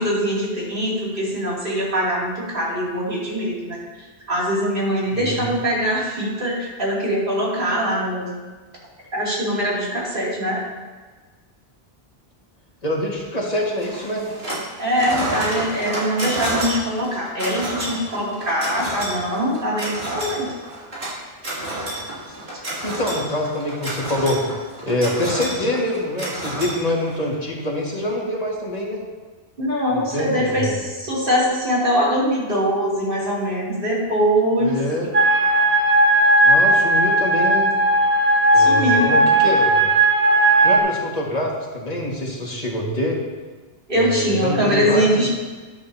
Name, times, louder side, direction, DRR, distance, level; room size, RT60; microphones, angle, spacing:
voice 1, 0.0-3.8 4.3-8.3 9.1-10.6 14.8-20.5 29.6-34.8 38.5-39.2 43.9-45.3, equal, 60° right, -6 dB, 2.9 m, -22 dB
voice 2, 5.1-5.5 12.8-14.4 22.8-24.4 24.8-29.0 29.9-30.8 34.6-35.1 36.4-37.7 38.5-39.9 40.6-43.2 43.9-45.3, left 1 dB, 40° left, -3 dB, 1.9 m, -25 dB
sound 1, 13.8-14.7 14.9-27.3, right 1 dB, 80° right, 3.1 m, -29 dB
sound 2, 35.1-40.8, right 1 dB, 40° right, 1.0 m, -16 dB
11.5 x 10.5 x 2.8 m, 1.4 s
omnidirectional pair, 1.0 m